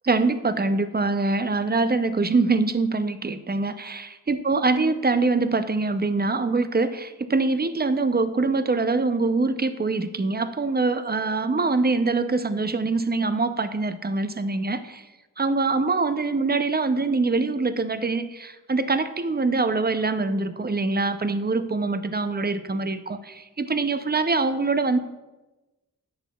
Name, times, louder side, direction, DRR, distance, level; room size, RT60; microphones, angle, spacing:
voice 1, 0.0-15.0 15.4-25.0, right 3 dB, 30° right, 11 dB, 0.5 m, -24 dB
10.0 x 7.1 x 2.3 m, 1.1 s
wide cardioid pair, 50°, 35 cm